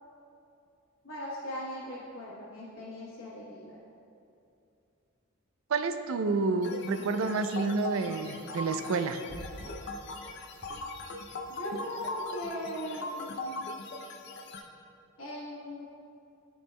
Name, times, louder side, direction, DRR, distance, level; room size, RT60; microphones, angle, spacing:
voice 1, 1.0-3.8 11.5-13.7 15.2-15.9, left 1 dB, 90° left, -7 dB, 1.1 m, -39 dB
voice 2, 5.7-9.2, right 3 dB, 80° right, 9 dB, 0.4 m, -29 dB
sound 1, 6.6-14.6, left 2 dB, 60° left, 0.5 m, -40 dB
sound 2, 9.3-10.0 10.6-11.5, right 1 dB, 30° right, 0.5 m, -47 dB
13.0 x 4.5 x 2.2 m, 2.6 s
head